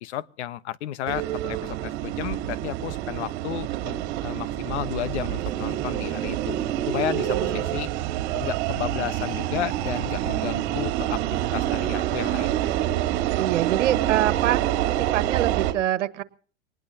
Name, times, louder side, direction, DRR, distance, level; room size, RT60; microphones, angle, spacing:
voice 1, 0.0-6.6 6.9-7.9 8.3-11.2 11.5-12.7, left 12 dB, 65° left, 1.0 m, -33 dB
sound 1, 1.1-15.7, right 13 dB, 45° right, 3.0 m, -27 dB
voice 2, 7.3-7.8 13.3-14.6 15.0-16.2, right 13 dB, 85° right, 1.5 m, -25 dB
24.0 x 20.0 x 2.7 m
supercardioid pair, 145°, 36 cm